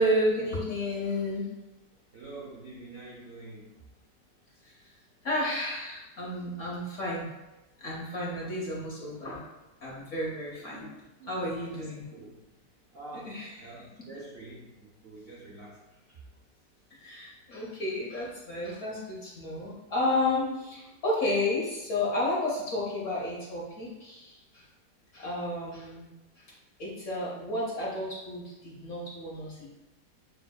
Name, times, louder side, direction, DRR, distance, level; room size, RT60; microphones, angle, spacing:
voice 1, 0.0-1.5 4.6-4.9 5.2-7.3 7.8-9.4 9.8-10.8 11.3-12.1 13.2-13.6 16.9-24.6 25.1-26.1 26.4-26.5 26.8-29.7, left 1 dB, 55° left, -5 dB, 0.9 m, -31 dB
voice 2, 2.1-3.7 10.6-12.4 12.9-16.2, right 2 dB, 65° right, -5 dB, 0.5 m, -47 dB
6.7 x 2.5 x 2.2 m, 1.0 s
omnidirectional pair, 2.0 m